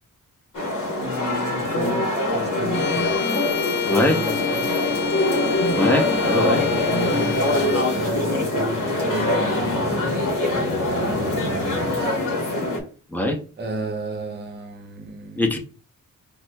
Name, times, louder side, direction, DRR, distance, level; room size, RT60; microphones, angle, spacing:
sound 1, 0.5-12.8, left 2 dB, 65° left, 1.0 m, -23 dB
voice 1, 1.0-3.2 3.8-4.9 6.3-10.1 10.5-12.1 13.6-15.6, right 1 dB, 30° right, 0.7 m, -33 dB
Bowed string instrument, 2.7-8.1, left 9 dB, 80° left, 0.5 m, -30 dB
voice 2, 3.9-4.2 5.7-6.6 13.1-13.4 15.4-15.6, left 2 dB, 5° left, 0.6 m, -22 dB
5.8 x 2.1 x 2.2 m
wide cardioid pair, 120°, 34 cm